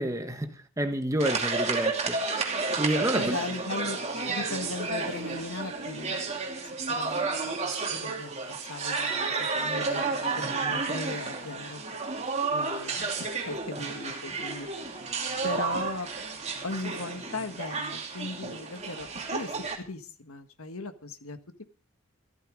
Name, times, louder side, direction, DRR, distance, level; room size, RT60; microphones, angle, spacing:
voice 1, 0.0-2.2 2.8-3.4, right 1 dB, 15° right, 1.3 m, -29 dB
sound 1, 1.2-19.8, right 4 dB, 30° right, 2.8 m, -31 dB
voice 2, 3.1-4.0 4.3-6.3 6.9-11.8 12.5-14.7 15.4-16.1 16.6-21.7, left 3 dB, 75° left, 1.6 m, -38 dB
15.0 x 13.5 x 5.1 m
head